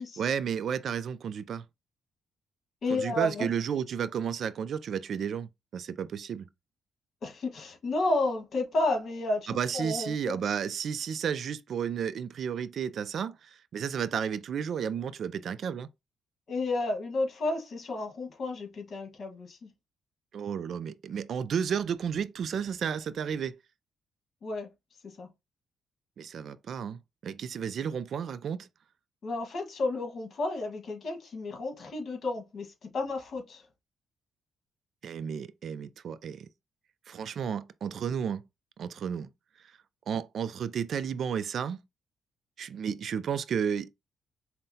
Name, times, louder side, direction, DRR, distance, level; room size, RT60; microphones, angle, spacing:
voice 1, 0.2-1.6 2.9-6.5 9.5-15.9 20.3-23.5 26.2-28.7 35.0-36.5 37.1-38.4 38.8-39.3 40.1-41.8 42.6-43.9, right 7 dB, 60° right, 0.3 m, -32 dB
voice 2, 2.8-3.5 7.2-10.4 16.5-19.6 24.4-24.7 25.0-25.3 29.2-33.6, left 2 dB, 50° left, 1.4 m, -32 dB
5.4 x 2.1 x 2.7 m
cardioid pair, 90°, 0 cm